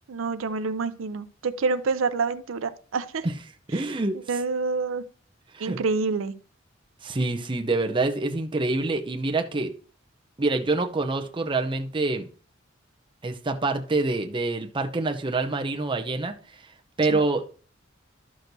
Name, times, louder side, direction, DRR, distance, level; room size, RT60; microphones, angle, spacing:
voice 1, 0.1-3.3 3.7-3.8 4.3-5.1 5.6-6.3 17.1-17.2, right 4 dB, 85° right, 12 dB, 0.5 m, -27 dB
voice 2, 3.7-4.2 5.5-5.8 7.0-9.7 10.4-12.3 13.2-16.3 17.0-17.4, right 3 dB, 25° right, 6 dB, 0.6 m, -26 dB
12.0 x 6.3 x 2.7 m, 0.41 s
head